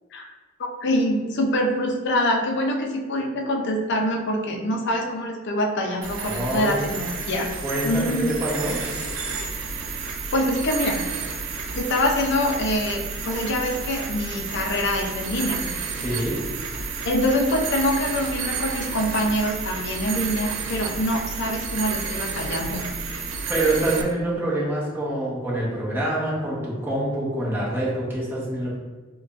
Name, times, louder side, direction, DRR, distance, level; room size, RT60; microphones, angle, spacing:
voice 1, 0.8-7.5 7.8-8.3 10.3-11.0 11.8-15.6 17.0-22.8, left 1 dB, 60° left, 1 dB, 0.5 m, -25 dB
sound 1, 6.0-24.0, right 5 dB, 70° right, 0.4 m, -31 dB
voice 2, 6.2-6.8 7.6-8.1 8.4-8.8 16.0-16.3 23.5-28.7, right 1 dB, 10° right, -7 dB, 0.9 m, -26 dB
4.5 x 2.3 x 2.5 m, 1.3 s
head